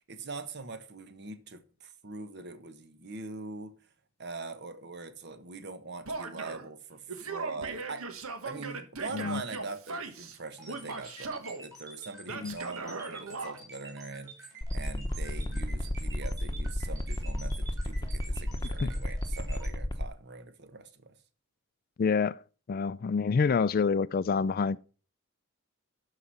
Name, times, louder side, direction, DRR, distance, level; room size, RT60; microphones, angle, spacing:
voice 1, 0.1-3.8 4.2-8.1 8.4-21.1, right 3 dB, 55° right, 1.1 m, -42 dB
Male speech man speaking / Yell, 6.1-6.7 7.1-10.4 10.7-11.6 12.3-13.6, right 4 dB, 85° right, 1.4 m, -39 dB
sound 1, 10.6-19.7, right 2 dB, 15° right, 3.8 m, -49 dB
sound 2, 14.6-20.0, left 1 dB, 20° left, 0.9 m, -31 dB
voice 2, 22.0-22.4 22.7-24.8, left 5 dB, 45° left, 0.4 m, -27 dB
12.5 x 4.9 x 5.6 m
head